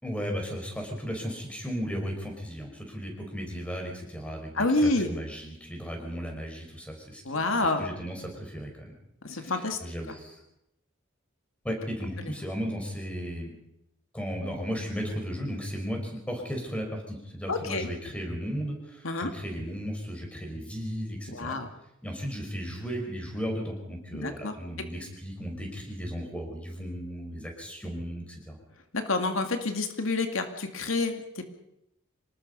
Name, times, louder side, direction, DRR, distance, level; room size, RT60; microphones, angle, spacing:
voice 1, 0.0-7.2 7.6-8.9 9.3-10.4 11.6-13.5 14.1-21.6 22.0-28.6, equal, 5° left, 2 dB, 5.7 m, -35 dB
voice 2, 4.5-5.1 7.3-7.8 9.2-9.8 17.5-17.9 19.0-19.3 21.3-21.7 24.1-24.6 28.9-31.4, left 2 dB, 90° left, 5 dB, 2.3 m, -28 dB
26.5 x 19.5 x 5.5 m, 0.83 s
head